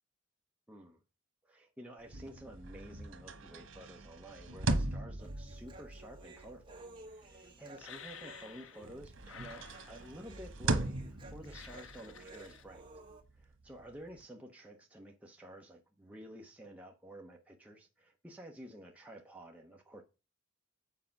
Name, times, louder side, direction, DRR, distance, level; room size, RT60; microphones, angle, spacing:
voice 1, 0.7-1.0 1.4-6.8 7.1-12.9 13.3-20.0, right 1 dB, 5° right, 0.9 m, -51 dB
sound 1, 2.0-8.5 8.8-14.2, right 2 dB, 90° right, 1.2 m, -40 dB
Human voice, 5.2-13.2, right 2 dB, 25° right, 1.6 m, -55 dB
sound 2, 7.8-8.9 9.2-10.3 11.4-12.6, left 7 dB, 80° left, 0.8 m, -52 dB
7.6 x 4.8 x 5.9 m
head